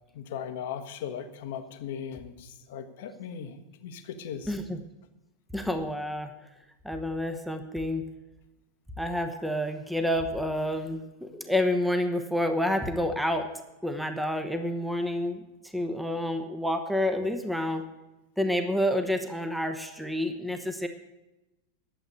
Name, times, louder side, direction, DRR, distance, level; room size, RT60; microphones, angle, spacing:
voice 1, 0.1-4.5, left 8 dB, 55° left, 9 dB, 1.2 m, -38 dB
voice 2, 4.5-4.8 5.5-6.3 6.8-8.1 9.0-13.5 13.8-17.8 18.4-20.9, left 1 dB, ahead, 7 dB, 1.1 m, -29 dB
11.5 x 8.0 x 8.5 m, 0.96 s
figure-of-eight pair, 90°, 0 cm